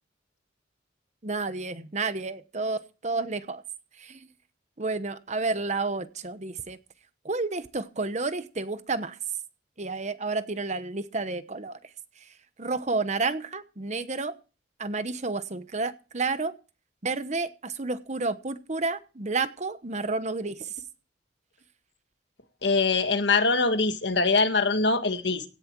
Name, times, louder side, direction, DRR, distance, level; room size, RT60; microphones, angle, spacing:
voice 1, 1.2-3.6 4.0-4.3 4.8-6.8 7.2-9.2 9.8-11.8 12.6-14.3 14.8-16.5 17.0-20.7, right 3 dB, 40° right, 1.0 m, -30 dB
voice 2, 22.6-25.4, left 3 dB, 65° left, 1.6 m, -23 dB
17.0 x 10.5 x 4.6 m
head